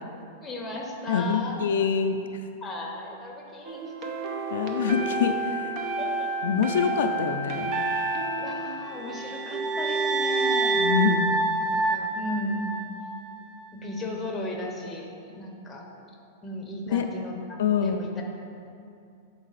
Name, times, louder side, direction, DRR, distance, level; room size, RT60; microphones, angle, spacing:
voice 1, 0.4-1.9 2.6-3.9 6.0-6.3 8.4-10.8 11.7-12.7 13.7-15.9 16.4-18.2, left 1 dB, 10° left, 0 dB, 0.9 m, -36 dB
voice 2, 1.1-2.5 4.5-5.7 6.4-7.7 10.8-11.4 16.9-17.1 17.6-18.0, left 6 dB, 80° left, 6 dB, 0.4 m, -25 dB
sound 1, 3.6-9.6, right 2 dB, 40° right, 0.8 m, -31 dB
sound 2, 9.0-13.3, right 3 dB, 25° right, 0.4 m, -26 dB
7.2 x 4.7 x 4.0 m, 2.5 s
supercardioid pair, 145°, 0 cm